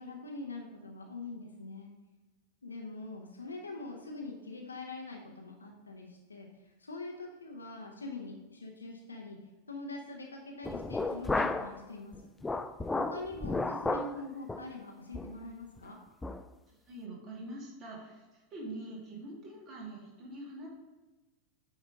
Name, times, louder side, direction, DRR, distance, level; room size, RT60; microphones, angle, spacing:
voice 1, 0.0-1.9 2.6-9.4 9.7-12.3 13.0-16.0, left 2 dB, 75° left, 0 dB, 0.9 m, -43 dB
sound 1, 10.6-11.8 12.1-14.2 14.5-14.7 15.1-15.4 15.8-15.9 16.2-16.4, left 3 dB, 10° left, 0.3 m, -33 dB
voice 2, 16.9-20.7, right 1 dB, 30° right, -3 dB, 2.7 m, -44 dB
8.4 x 4.3 x 5.0 m, 1.2 s
figure-of-eight pair, 90°, 0 cm